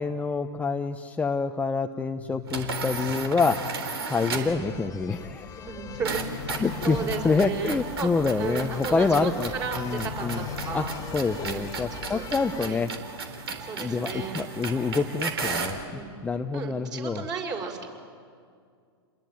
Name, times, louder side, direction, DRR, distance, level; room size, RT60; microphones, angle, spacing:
voice 1, 0.0-3.6 4.1-5.5 6.6-9.5 9.8-10.4 10.7-10.8 11.1-12.9 13.8-15.8 16.2-17.2, left 4 dB, 10° left, 5 dB, 0.9 m, -27 dB
sound 1, 2.1-4.1 5.8-7.8 9.5-11.5, left 12 dB, 70° left, 0.9 m, -39 dB
sound 2, 2.5-4.6 6.0-15.8, right 4 dB, 75° right, 3.9 m, -35 dB
sound 3, 4.5-12.7, left 6 dB, 25° left, 2.1 m, -42 dB
voice 2, 5.7-6.2 6.8-8.1 8.4-10.9 11.4-12.2 12.6-12.8 13.6-14.4 15.9-16.1 16.5-17.9, right 5 dB, 30° right, 2 dB, 5.9 m, -34 dB
29.0 x 21.5 x 9.4 m, 2.1 s
hypercardioid pair, 105°, 13 cm